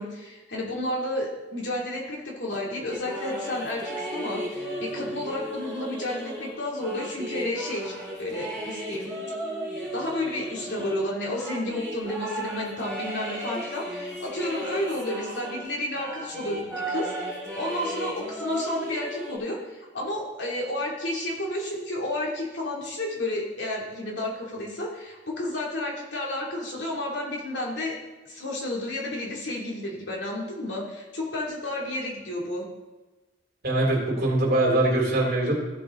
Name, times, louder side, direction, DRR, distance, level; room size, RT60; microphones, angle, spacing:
voice 1, 0.0-7.9 8.2-9.1 9.9-27.9 28.2-32.6, left 1 dB, 75° left, -3 dB, 2.8 m, -31 dB
sound 1, 2.9-15.7 15.9-19.4, right 1 dB, 5° left, 4.0 m, -35 dB
voice 2, 33.6-35.5, right 1 dB, 55° right, -2 dB, 2.9 m, -22 dB
15.5 x 6.1 x 3.8 m, 1.2 s
head